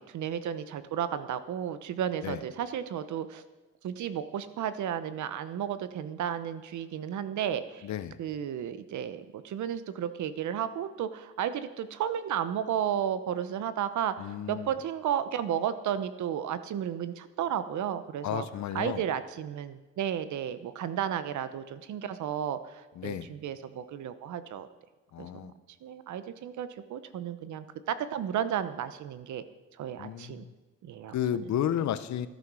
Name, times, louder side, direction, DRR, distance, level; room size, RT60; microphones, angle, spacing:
voice 1, 0.1-3.4 3.8-7.9 8.2-18.5 18.7-24.7 25.2-25.5 25.8-29.4 29.8-30.4 30.8-31.2, right 9 dB, 75° right, 13 dB, 1.0 m, -33 dB
voice 2, 7.8-8.2 14.2-14.7 18.2-19.0 23.0-23.3 25.1-25.5 30.0-30.5 31.1-32.3, left 10 dB, 65° left, 14 dB, 0.9 m, -32 dB
14.0 x 9.4 x 6.2 m, 1.2 s
cardioid pair, 90°, 30 cm